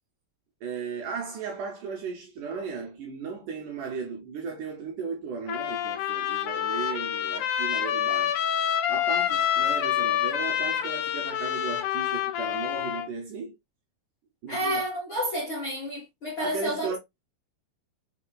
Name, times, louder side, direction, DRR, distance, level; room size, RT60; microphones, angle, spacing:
voice 1, 0.6-8.4 8.9-13.5 14.4-14.8 16.4-17.0, right 5 dB, 70° right, 2.0 m, -36 dB
Trumpet, 5.5-13.1, left 10 dB, 75° left, 2.6 m, -27 dB
voice 2, 14.5-17.0, equal, 50° left, 1.5 m, -30 dB
5.8 x 3.5 x 2.2 m
omnidirectional pair, 4.4 m